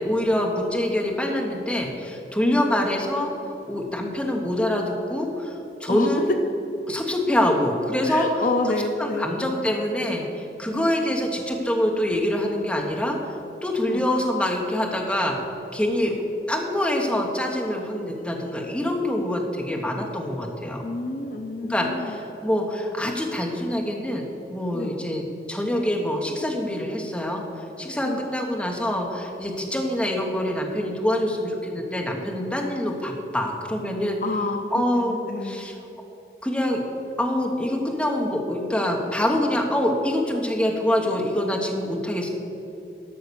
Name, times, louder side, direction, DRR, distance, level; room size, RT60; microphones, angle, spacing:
voice 1, 0.0-6.3 6.9-8.4 9.0-13.2 13.6-15.4 15.7-16.1 16.5-20.8 21.7-24.3 24.5-27.4 27.8-34.2 34.7-35.8 36.4-36.8 37.2-42.3, left 1 dB, 5° left, 0 dB, 1.1 m, -25 dB
voice 2, 8.1-9.3 10.7-10.9 13.8-14.0 16.0-16.2 20.8-22.1 24.7-24.9 28.1-28.2 34.2-35.7, left 3 dB, 50° left, 5 dB, 0.6 m, -29 dB
12.5 x 5.8 x 7.0 m, 3.0 s
head